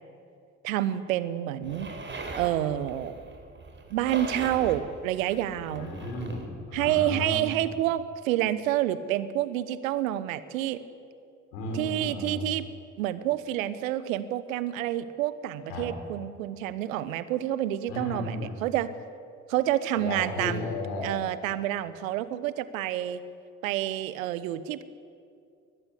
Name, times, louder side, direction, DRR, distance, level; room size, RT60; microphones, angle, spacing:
voice 1, 0.6-1.9 2.3-3.2 3.9-5.9 6.7-10.8 11.7-12.7 13.0-18.9 19.5-20.7 21.0-23.2 23.6-24.8, right 13 dB, 80° right, 15 dB, 1.1 m, -28 dB
sound 1, 1.6-6.5, right 3 dB, 30° right, 4.6 m, -40 dB
voice 2, 5.6-7.5 11.5-12.4 15.7-15.9 17.9-18.6 20.0-21.1, left 2 dB, 80° left, 0 dB, 6.1 m, -34 dB
22.0 x 20.5 x 8.2 m, 2.4 s
hypercardioid pair, 50°, 40 cm